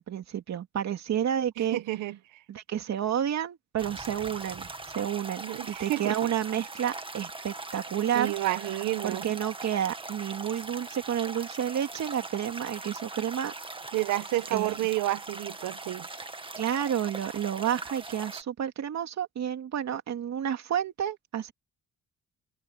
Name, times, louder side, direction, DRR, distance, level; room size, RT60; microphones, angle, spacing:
voice 1, 0.0-1.8 2.5-8.3 9.0-13.5 14.5-14.8 16.6-21.5, right 9 dB, 65° right, 2.7 m, -30 dB
voice 2, 1.6-2.2 5.4-6.1 8.1-9.2 13.9-16.1, right 16 dB, 90° right, 1.2 m, -30 dB
sound 1, 3.8-18.4, right 3 dB, 15° right, 1.9 m, -41 dB
open air
cardioid pair, 90°, 30 cm